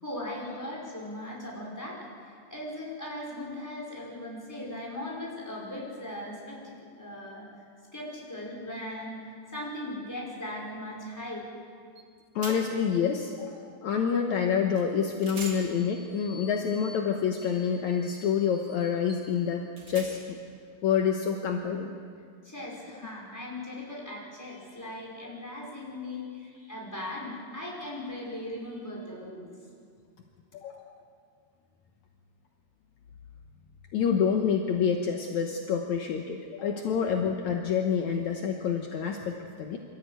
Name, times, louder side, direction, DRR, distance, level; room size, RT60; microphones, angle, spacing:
voice 1, 0.0-7.5 7.9-9.2 9.5-11.5 22.4-29.5, left 1 dB, 5° left, -4 dB, 5.1 m, -38 dB
sound 1, 12.0-12.1 12.4-12.9 14.8-14.9 15.2-20.5, right 2 dB, 30° right, 2.6 m, -46 dB
voice 2, 12.4-20.4 20.8-21.9 30.5-30.9 33.9-39.8, left 7 dB, 70° left, 3 dB, 1.8 m, -28 dB
26.0 x 14.0 x 9.2 m, 2.2 s
omnidirectional pair, 4.8 m